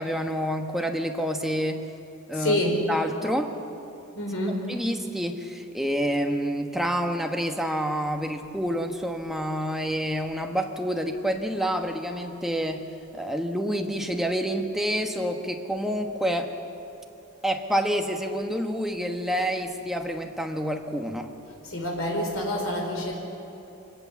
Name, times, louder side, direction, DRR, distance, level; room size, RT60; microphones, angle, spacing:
voice 1, 0.0-1.8 2.3-2.6 2.9-3.6 4.7-12.8 13.1-16.5 17.4-21.3, equal, ahead, 3 dB, 1.2 m, -28 dB
voice 2, 2.3-2.8 4.2-4.6 21.6-23.1, left 1 dB, 65° left, 1 dB, 4.4 m, -27 dB
24.5 x 17.5 x 7.2 m, 2.9 s
head